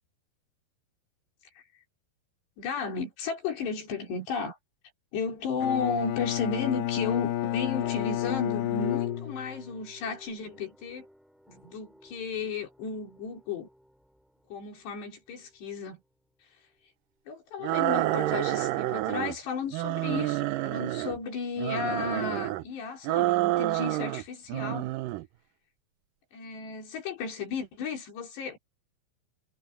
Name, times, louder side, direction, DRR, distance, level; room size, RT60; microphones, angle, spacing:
voice 1, 2.6-4.6 5.1-11.1 11.5-13.7 14.5-16.0 17.3-24.9 26.3-28.6, left 5 dB, 90° left, 6.5 m, -34 dB
Bowed string instrument, 5.6-9.8, left 13 dB, 65° left, 2.3 m, -30 dB
sound 1, 7.4-15.5, equal, ahead, 2.8 m, -51 dB
sound 2, 17.6-19.4 19.7-21.2 21.6-22.6 23.0-24.2 24.5-25.2, right 17 dB, 85° right, 1.9 m, -28 dB
omnidirectional pair, 4.8 m